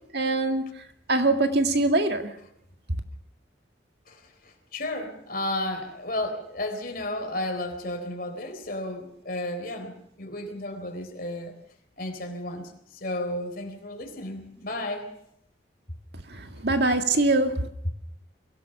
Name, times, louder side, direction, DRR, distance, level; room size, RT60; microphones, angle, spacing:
voice 1, 0.1-0.7 1.1-2.3 16.3-17.7, right 2 dB, 60° right, 2.0 m, -23 dB
voice 2, 4.1-11.5 12.0-15.1, left 1 dB, 50° left, 3.9 m, -33 dB
23.0 x 17.0 x 7.0 m
head